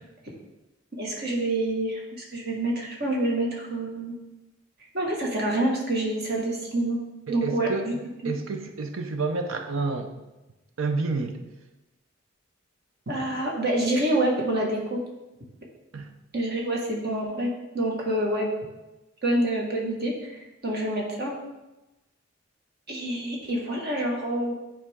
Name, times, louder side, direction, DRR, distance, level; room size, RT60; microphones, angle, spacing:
voice 1, 1.0-4.1 4.9-7.0 7.3-7.9 13.1-15.0 16.3-18.5 19.2-21.3 22.9-24.5, right 1 dB, 55° right, -1 dB, 1.7 m, -27 dB
voice 2, 7.3-7.9 8.2-10.1 10.8-11.4 15.9-16.1, right 3 dB, 90° right, 6 dB, 0.7 m, -29 dB
10.0 x 4.3 x 3.6 m, 1.0 s
head